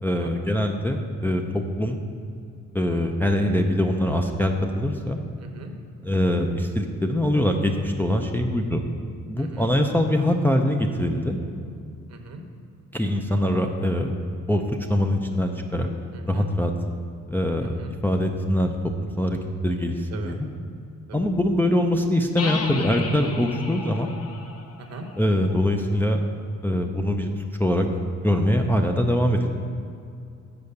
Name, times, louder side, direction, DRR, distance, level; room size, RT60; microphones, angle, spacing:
voice 1, 0.0-2.0 2.7-5.2 6.0-8.8 9.3-11.4 12.9-14.1 14.5-14.6 14.9-15.9 16.3-16.7 17.3-18.7 19.2-19.4 19.6-20.5 21.1-24.1 25.2-26.2 26.6-27.9 28.2-29.5, left 1 dB, 5° left, 2 dB, 0.5 m, -23 dB
voice 2, 5.4-5.7 9.4-9.7 12.1-12.4 16.1-16.5 17.6-17.9 20.1-20.4 21.1-21.3 24.8-25.1, right 4 dB, 55° right, 4 dB, 1.0 m, -40 dB
sound 1, 22.4-26.0, left 4 dB, 50° left, 0.8 m, -34 dB
6.9 x 4.7 x 6.6 m, 2.5 s
cardioid pair, 90°, 30 cm